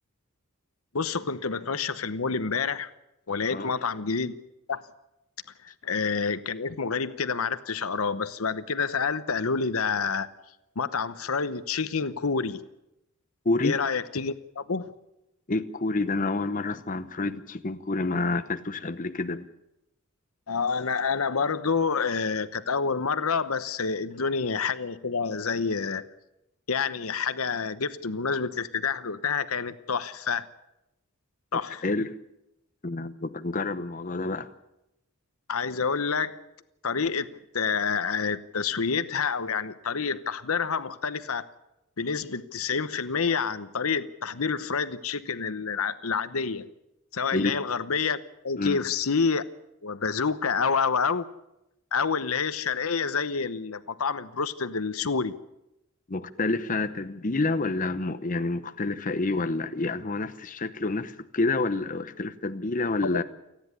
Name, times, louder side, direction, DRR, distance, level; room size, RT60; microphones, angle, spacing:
voice 1, 0.9-2.9 3.3-4.3 4.7-4.8 5.6-10.3 10.8-12.6 13.6-14.9 20.5-26.0 26.7-30.5 31.5-31.8 35.5-36.4 36.8-37.3 37.5-41.5 42.0-46.7 47.1-48.2 48.4-49.4 49.8-51.3 51.9-55.3 63.1-63.2, left 5 dB, 90° left, 1.0 m, -28 dB
voice 2, 13.4-13.8 15.5-19.5 31.5-32.1 32.8-34.5 47.3-47.5 48.6-48.8 56.1-63.2, left 3 dB, 40° left, 0.9 m, -28 dB
29.0 x 10.5 x 9.8 m
head